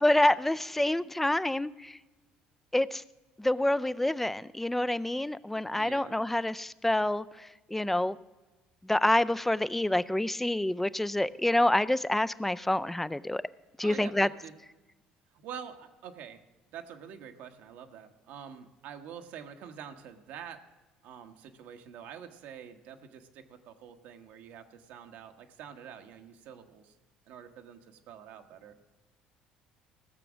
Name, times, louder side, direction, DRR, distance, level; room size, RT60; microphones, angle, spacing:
voice 1, 0.0-2.0 2.7-3.0 3.4-8.2 8.8-13.4 13.8-14.3, left 1 dB, 5° left, 16 dB, 0.4 m, -27 dB
voice 2, 5.8-6.2 13.8-14.5 15.3-16.4 16.7-20.6 21.0-27.0 27.3-28.7, right 8 dB, 75° right, 6 dB, 1.2 m, -46 dB
16.5 x 6.9 x 6.2 m, 1.1 s
supercardioid pair, 90°, 3 cm